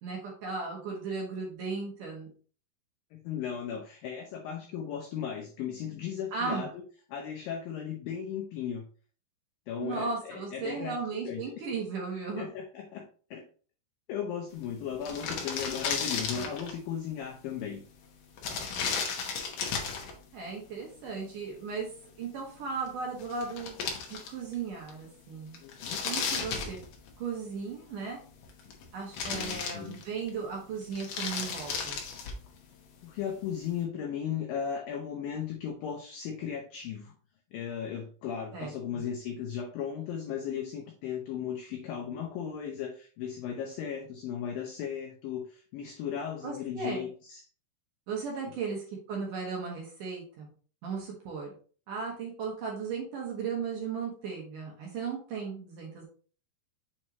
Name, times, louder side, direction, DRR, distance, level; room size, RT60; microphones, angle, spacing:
voice 1, 0.0-2.3 6.3-6.7 9.8-12.5 20.3-21.9 22.2-23.8 24.1-25.6 26.0-26.8 27.2-28.3 28.9-32.0 38.5-38.7 46.4-47.1 48.1-50.5 50.8-51.5 51.9-56.0, right 5 dB, 60° right, -1 dB, 2.4 m, -36 dB
voice 2, 3.1-6.8 7.1-8.9 9.7-11.0 11.2-11.4 12.4-13.1 13.3-13.5 14.1-17.8 25.6-26.0 26.5-26.6 29.3-30.0 33.0-37.1 37.5-47.4 48.5-48.6, left 8 dB, 85° left, 3 dB, 2.0 m, -36 dB
sound 1, 14.6-14.7 14.9-16.8 18.4-20.1 22.9-23.0 23.2-24.5 24.9-25.0 25.5-27.3 28.3-28.8 29.1-30.3 30.8-32.5, left 5 dB, 65° left, 2.1 m, -34 dB
7.2 x 4.4 x 3.0 m, 0.40 s
omnidirectional pair, 5.1 m